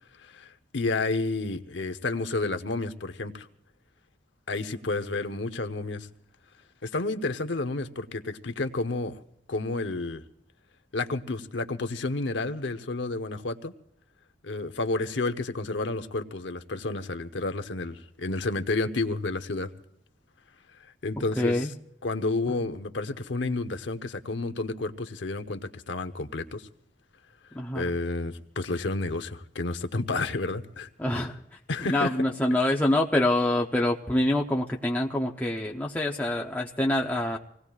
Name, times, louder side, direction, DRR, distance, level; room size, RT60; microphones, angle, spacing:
voice 1, 0.2-3.5 4.5-6.1 6.8-9.2 9.5-10.2 10.9-13.7 14.4-19.7 21.0-21.7 22.0-26.7 27.7-30.9 31.7-32.1, left 3 dB, 80° left, 0.9 m, -30 dB
voice 2, 21.4-21.7 27.5-27.9 31.0-31.4 31.9-37.4, left 1 dB, 10° left, 0.7 m, -25 dB
26.5 x 18.0 x 2.4 m
head